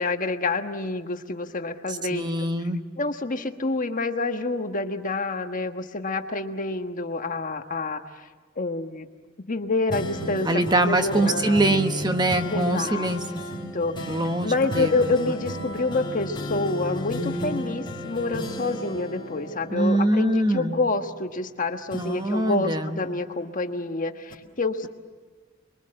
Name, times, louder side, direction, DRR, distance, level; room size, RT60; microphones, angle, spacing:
voice 1, 0.0-2.3 3.0-8.0 8.6-9.1 9.5-10.5 10.7-11.6 12.5-13.2 13.7-13.9 14.4-24.9, left 3 dB, 40° left, 6 dB, 1.4 m, -27 dB
voice 2, 1.9-2.8 10.4-13.4 14.1-14.9 15.3-15.4 19.7-20.8 21.9-23.0, right 1 dB, 20° right, 7 dB, 1.2 m, -24 dB
sound 1, 9.9-21.5 21.9-23.8 24.3-24.4, left 1 dB, 25° left, 4.6 m, -34 dB
29.5 x 23.0 x 7.6 m, 1.4 s
head